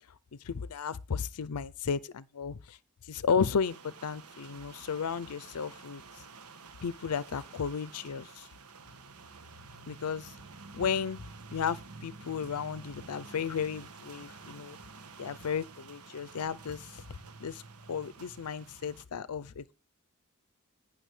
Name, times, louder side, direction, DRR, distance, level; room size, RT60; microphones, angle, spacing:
voice 1, 0.4-2.8 3.1-6.0 6.8-8.5 9.9-10.3 10.7-11.2 11.5-14.8 15.2-17.0 17.4-17.6 17.9-19.7, left 6 dB, 80° left, 0.5 m, -34 dB
sound 1, 3.6-19.0, right 4 dB, 80° right, 1.3 m, -50 dB
18.5 x 6.1 x 3.2 m
head